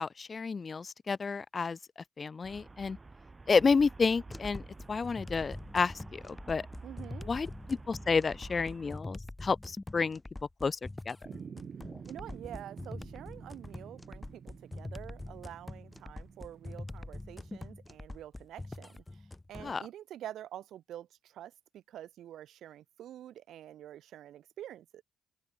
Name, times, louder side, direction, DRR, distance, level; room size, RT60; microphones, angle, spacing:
voice 1, 0.0-1.8 2.2-3.0 3.5-4.6 4.9-6.6 7.3-10.2 10.6-10.8 11.1-11.2 19.6-19.8, left 5 dB, 40° left, 0.4 m, -30 dB
Traffic noise roadway noise, 2.4-9.0, right 3 dB, 25° right, 2.2 m, -49 dB
sound 1, 4.3-19.7, left 2 dB, 15° left, 3.1 m, -44 dB
voice 2, 6.8-7.3 12.1-25.0, right 11 dB, 80° right, 2.0 m, -47 dB
sound 2, 11.2-17.7, right 7 dB, 55° right, 5.9 m, -50 dB
open air
supercardioid pair, 70°, 0 cm